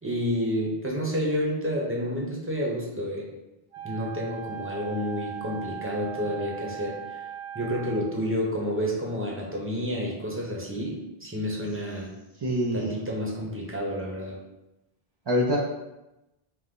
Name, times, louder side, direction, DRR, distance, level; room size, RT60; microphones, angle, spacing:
voice 1, 0.0-3.3 3.8-7.2 7.5-12.1 12.7-14.4, equal, 15° right, -3 dB, 0.8 m, -30 dB
Wind instrument woodwind instrument, 3.7-8.1, right 9 dB, 70° right, 0.9 m, -38 dB
voice 2, 12.4-13.0 15.3-15.6, equal, 45° right, -2 dB, 0.3 m, -25 dB
5.7 x 2.1 x 3.7 m, 0.96 s
omnidirectional pair, 1.0 m